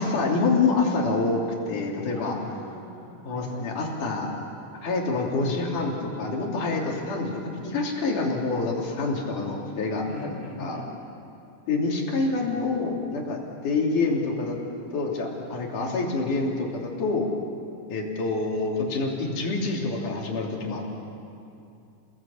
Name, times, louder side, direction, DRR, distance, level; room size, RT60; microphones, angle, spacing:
voice 1, 0.0-2.3 3.2-4.3 4.8-10.8 11.7-14.6 14.9-17.3 17.9-20.9, left 3 dB, 75° left, -1 dB, 4.6 m, -27 dB
voice 2, 2.1-4.0 6.7-7.0 10.0-10.9 12.4-12.8, left 2 dB, 40° left, -3 dB, 6.9 m, -43 dB
29.0 x 18.5 x 8.5 m, 2.6 s
omnidirectional pair, 3.6 m